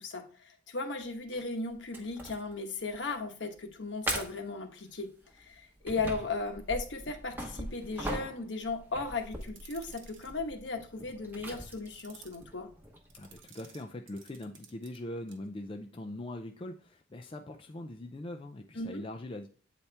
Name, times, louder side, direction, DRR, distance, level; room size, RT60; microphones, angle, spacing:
voice 1, 0.0-5.1 5.4-12.7 18.7-19.0, left 3 dB, 65° left, 5 dB, 1.1 m, -36 dB
sound 1, 1.3-1.4 1.9-2.6 2.9-3.1 3.6-3.7 4.1-4.5 5.3-13.4, right 1 dB, 10° right, 0.9 m, -41 dB
sound 2, 9.3-10.3 11.7-12.4 13.1-15.0 15.3-15.5, right 7 dB, 80° right, 1.1 m, -56 dB
voice 2, 13.1-19.5, left 1 dB, 25° left, 3 dB, 0.4 m, -42 dB
8.3 x 4.3 x 3.3 m, 0.40 s
head